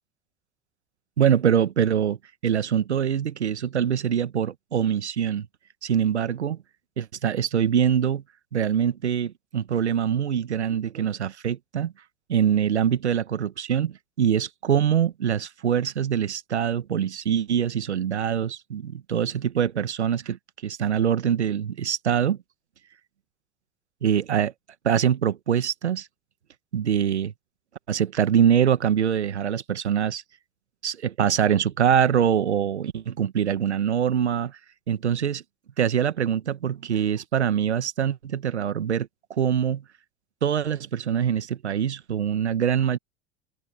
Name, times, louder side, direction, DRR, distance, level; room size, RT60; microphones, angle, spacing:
voice 1, 1.2-2.2 2.4-5.5 5.8-6.6 7.0-8.2 8.5-11.9 12.3-20.4 20.6-22.4 24.0-24.5 24.8-26.1 26.7-27.3 27.9-30.2 30.8-34.6 34.9-35.4 35.8-39.8 40.4-43.0, right 8 dB, 90° right, 1.6 m, -24 dB
open air
hypercardioid pair, 80°, 33 cm